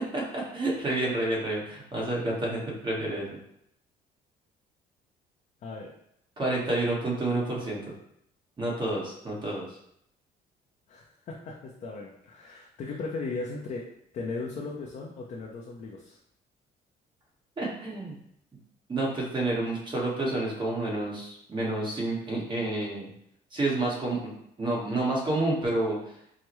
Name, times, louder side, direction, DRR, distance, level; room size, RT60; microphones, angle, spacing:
voice 1, 0.1-3.4 6.4-7.8 8.6-9.7 17.6-18.1 18.9-23.1 23.5-24.3 24.6-26.0, right 2 dB, 25° right, -4 dB, 1.3 m, -29 dB
voice 2, 5.6-5.9 10.9-16.2, left 3 dB, 45° left, -2 dB, 0.6 m, -37 dB
4.6 x 2.1 x 3.0 m, 0.73 s
cardioid pair, 110°, 17 cm